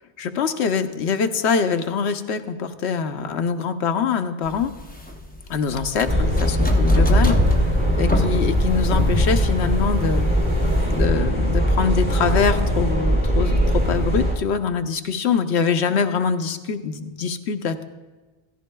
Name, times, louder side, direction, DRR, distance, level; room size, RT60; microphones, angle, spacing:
voice 1, 0.2-4.7 5.5-7.6 8.0-10.3 10.8-17.8, left 6 dB, 80° left, 8 dB, 1.0 m, -24 dB
sound 1, 4.5-11.1, left 2 dB, 10° left, 0.7 m, -26 dB
sound 2, 6.1-14.3, equal, 30° right, 2.9 m, -20 dB
17.0 x 14.0 x 2.2 m, 1.2 s
omnidirectional pair, 1.1 m